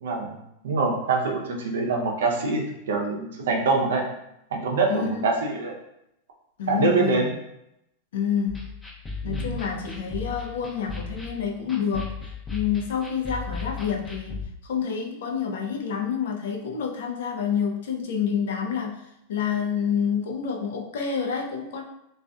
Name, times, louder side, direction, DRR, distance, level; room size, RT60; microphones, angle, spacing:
voice 1, 0.0-0.4 0.6-4.0 4.5-5.7 6.7-7.3 9.2-9.6, right 3 dB, 80° right, 0 dB, 0.6 m, -25 dB
voice 2, 4.9-5.3 6.6-7.3 8.1-8.7 9.2-12.2 12.5-19.0 19.3-21.8, left 7 dB, 75° left, 1 dB, 0.5 m, -28 dB
sound 1, 8.5-14.5, left 5 dB, 20° left, 0.6 m, -36 dB
2.5 x 2.3 x 2.3 m, 0.83 s
hypercardioid pair, 110°, 0 cm